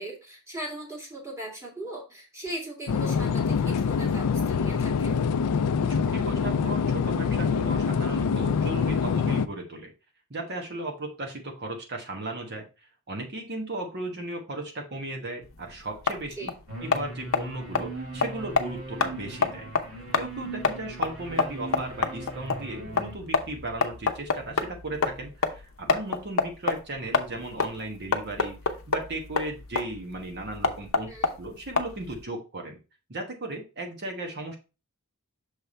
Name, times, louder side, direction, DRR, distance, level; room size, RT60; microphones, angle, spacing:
voice 1, 0.0-5.2 16.4-16.5 31.1-31.3, right 1 dB, 15° right, -2 dB, 1.8 m, -38 dB
sound 1, 2.9-9.5, left 6 dB, 85° left, 0.4 m, -25 dB
voice 2, 5.8-9.9 10.3-12.6 13.1-16.5 16.8-19.7 20.1-31.1 31.4-32.8 33.1-34.6, right 2 dB, 50° right, 2 dB, 1.2 m, -36 dB
sound 2, 15.4-32.2, left 4 dB, 65° left, 0.7 m, -29 dB
sound 3, 16.7-23.1, right 2 dB, 70° right, 2.7 m, -39 dB
6.6 x 3.4 x 4.2 m, 0.31 s
head